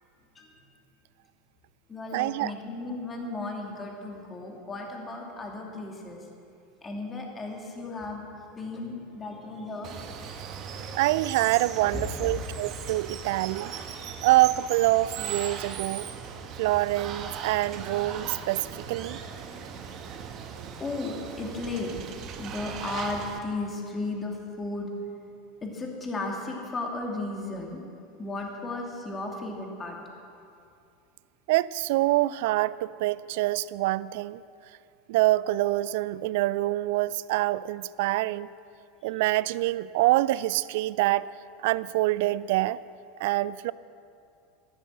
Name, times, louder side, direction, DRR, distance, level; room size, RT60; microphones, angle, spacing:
voice 1, 0.3-0.7 1.9-6.3 6.8-11.0 11.9-12.4 19.3-19.9 20.8-22.0 22.4-24.9 25.6-27.8 28.2-30.0, left 2 dB, 20° left, 0 dB, 2.7 m, -35 dB
voice 2, 2.1-2.5 10.9-13.8 14.2-16.1 16.6-19.2 31.5-34.4 35.1-38.5 39.0-41.3 41.6-42.8 43.2-43.7, right 17 dB, 60° right, 20 dB, 0.3 m, -25 dB
Water, 9.8-23.4, right 7 dB, 45° right, 1.3 m, -38 dB
13.0 x 12.5 x 7.6 m, 2.5 s
figure-of-eight pair, 80°, 0 cm